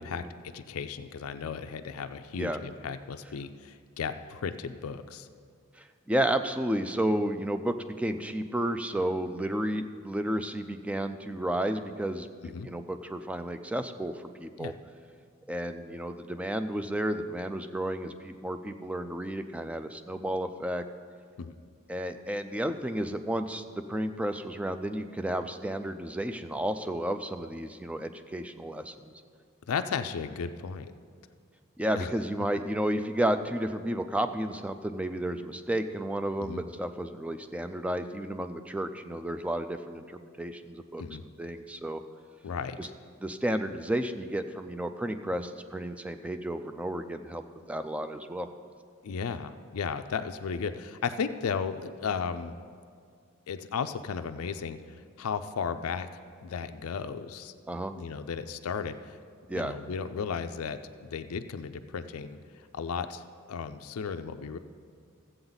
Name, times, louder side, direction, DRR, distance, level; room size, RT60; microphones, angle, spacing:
voice 1, 0.0-5.3 12.4-12.7 14.6-14.8 21.4-21.6 29.7-30.9 31.9-32.1 36.4-36.6 41.0-41.2 42.4-42.9 49.0-52.5 53.5-56.1 56.4-57.5 57.9-59.2 59.5-62.4 62.7-64.6, left 6 dB, 80° left, 9 dB, 0.4 m, -35 dB
voice 2, 5.7-14.7 15.5-20.8 21.9-29.1 31.8-41.0 41.4-42.0 42.8-42.9 43.2-47.4 47.7-48.5 57.7-57.9 59.5-59.8, right 1 dB, 5° right, 9 dB, 0.3 m, -32 dB
14.5 x 7.9 x 4.0 m, 2.1 s
head